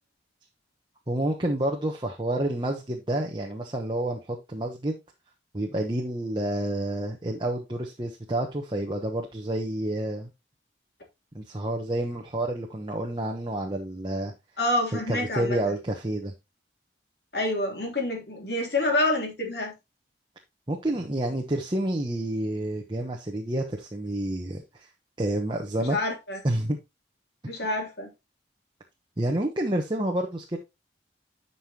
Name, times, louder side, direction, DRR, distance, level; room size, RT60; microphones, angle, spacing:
voice 1, 1.1-5.0 5.5-10.3 11.3-14.3 14.9-16.3 20.7-24.9 25.2-26.0 26.4-26.8 27.6-27.7 29.2-30.6, right 1 dB, 25° right, 1.0 m, -29 dB
voice 2, 14.6-15.7 17.3-19.7 25.8-26.4 27.5-28.1, left 2 dB, 60° left, 3.2 m, -27 dB
11.0 x 5.6 x 3.0 m
head